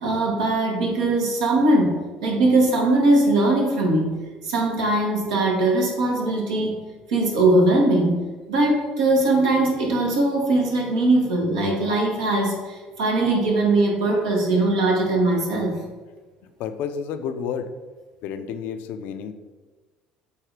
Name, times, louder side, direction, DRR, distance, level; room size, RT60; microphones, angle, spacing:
voice 1, 0.0-4.1 4.4-6.8 7.1-15.8, right 2 dB, 85° right, -1 dB, 1.4 m, -20 dB
voice 2, 16.6-17.7 18.2-19.3, left 7 dB, 70° left, 8 dB, 0.5 m, -30 dB
8.1 x 2.8 x 4.7 m, 1.3 s
hypercardioid pair, 75°, 3 cm